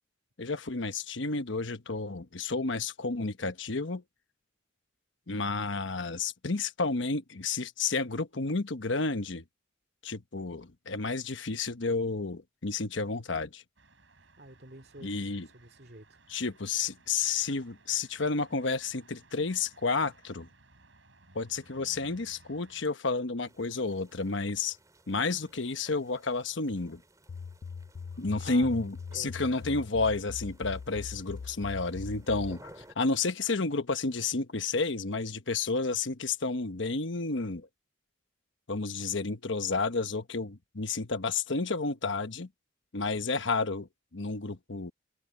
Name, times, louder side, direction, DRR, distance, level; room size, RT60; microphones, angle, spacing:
voice 1, 0.4-4.0 5.3-9.4 10.0-13.6 15.0-15.5 16.3-20.5 21.3-24.8 25.1-27.0 28.2-37.7 38.7-42.5 42.9-44.9, left 3 dB, 75° left, 1.1 m, -31 dB
sound 1, 13.8-22.8, right 2 dB, 75° right, 5.4 m, -60 dB
voice 2, 14.2-16.2 28.1-28.7 29.1-29.5, right 2 dB, 50° right, 2.5 m, -49 dB
sound 2, 23.4-33.0, right 1 dB, 15° right, 4.7 m, -58 dB
sound 3, 27.3-32.6, left 5 dB, 50° left, 0.3 m, -42 dB
head